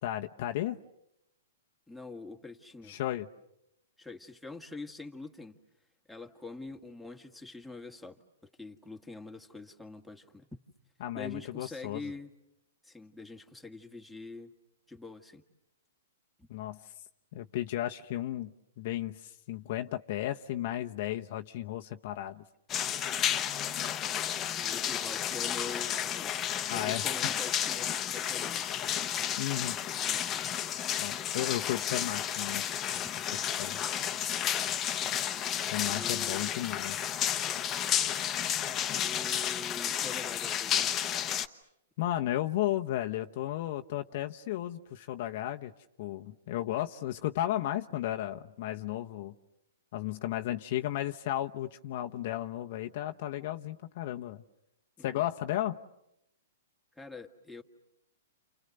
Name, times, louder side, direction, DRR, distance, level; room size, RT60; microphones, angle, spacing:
voice 1, 0.0-0.8 2.9-3.3 11.0-12.0 16.5-16.8 17.3-18.5 18.8-22.4 26.7-27.1 29.4-29.8 31.0-32.6 33.6-33.8 35.7-37.0 42.0-45.7 46.0-49.3 49.9-54.4 55.0-55.8, left 13 dB, 50° left, 6 dB, 1.0 m, -34 dB
voice 2, 1.9-3.0 4.0-5.6 6.1-8.2 8.6-10.5 11.2-12.3 12.8-14.5 14.9-15.4 16.4-16.5 24.6-26.3 26.7-29.4 30.0-30.5 30.7-30.8 33.0-33.1 35.9-36.6 38.9-40.9 55.0-55.2 57.0-57.6, left 3 dB, ahead, 1 dB, 1.8 m, -45 dB
sound 1, 22.7-41.5, left 10 dB, 25° left, 1.1 m, -32 dB
30.0 x 28.5 x 6.7 m, 0.83 s
hypercardioid pair, 140°, 0 cm